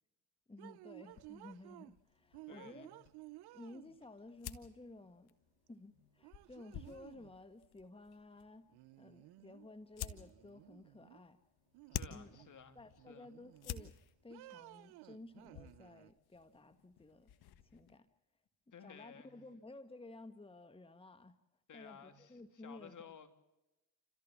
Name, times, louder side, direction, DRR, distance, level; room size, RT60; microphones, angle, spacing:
voice 1, 0.5-2.9 3.5-5.3 5.7-8.7 9.0-11.4 12.1-12.4 12.7-14.0 14.2-17.3 17.7-18.1 18.8-21.3 21.7-23.0, left 2 dB, 15° left, 1.4 m, -54 dB
sound 1, 0.6-2.0 2.3-4.2 5.7-5.8 6.2-7.4 8.7-9.7 10.0-11.2 11.7-12.6 13.0-13.9 14.3-16.1, right 19 dB, 75° right, 0.7 m, -56 dB
sound 2, 1.1-18.0, left 10 dB, 70° left, 1.5 m, -52 dB
voice 2, 2.5-2.9 11.9-12.8 13.1-13.3 18.7-19.4 21.7-23.3, left 7 dB, 50° left, 2.9 m, -55 dB
29.0 x 14.5 x 7.4 m
supercardioid pair, 65°, 39 cm